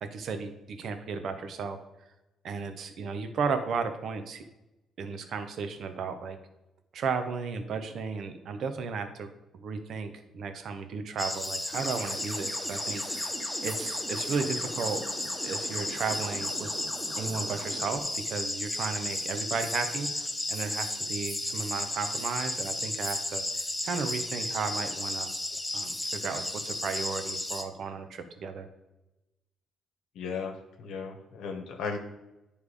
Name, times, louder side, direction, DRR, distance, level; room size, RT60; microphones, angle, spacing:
voice 1, 0.0-1.8 2.4-4.5 5.0-6.4 6.9-13.3 13.6-15.0 15.4-16.7 17.2-23.4 23.8-25.3 25.7-28.7, right 5 dB, 65° right, 8 dB, 0.9 m, -34 dB
sound 1, 11.2-27.6, left 1 dB, 10° left, 0.9 m, -34 dB
sound 2, 11.7-18.0, right 1 dB, 15° right, 2.0 m, -43 dB
voice 2, 30.1-32.0, left 5 dB, 85° left, 4 dB, 1.1 m, -36 dB
9.8 x 3.4 x 4.8 m, 0.98 s
cardioid pair, 90°, 0 cm